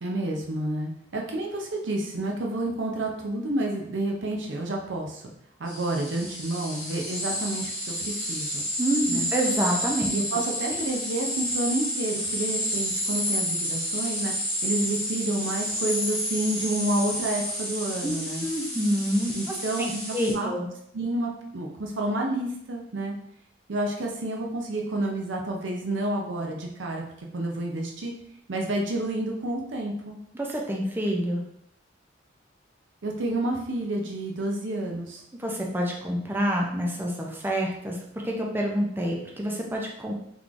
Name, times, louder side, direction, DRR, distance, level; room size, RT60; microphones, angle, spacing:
voice 1, 0.0-5.2 5.6-8.6 9.1-9.3 10.1-14.3 14.6-18.5 19.3-20.5 20.9-23.1 23.7-27.0 27.3-28.1 28.5-30.2 33.0-35.2, right 1 dB, 70° right, 1 dB, 0.6 m, -29 dB
sound 1, 5.7-20.3, equal, 5° left, 1.3 m, -30 dB
voice 2, 8.8-10.1 18.0-19.4 20.1-20.7 30.3-31.4 35.3-40.1, equal, 10° right, -1 dB, 0.5 m, -27 dB
3.6 x 3.1 x 2.5 m, 0.72 s
head